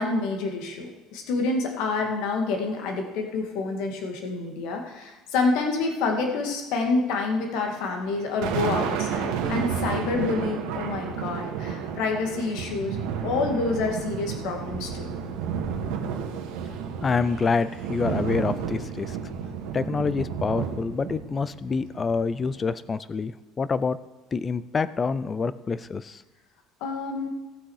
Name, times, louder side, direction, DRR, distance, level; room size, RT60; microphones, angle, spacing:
voice 1, 0.0-15.1 26.8-27.3, left 3 dB, 55° left, 3 dB, 2.0 m, -28 dB
Thunder, 8.0-22.6, right 7 dB, 90° right, 1.7 m, -31 dB
voice 2, 17.0-19.2 19.7-24.0 24.3-26.2, left 5 dB, 15° left, 16 dB, 0.3 m, -27 dB
18.0 x 6.3 x 4.8 m, 1.2 s
cardioid pair, 180°, 0 cm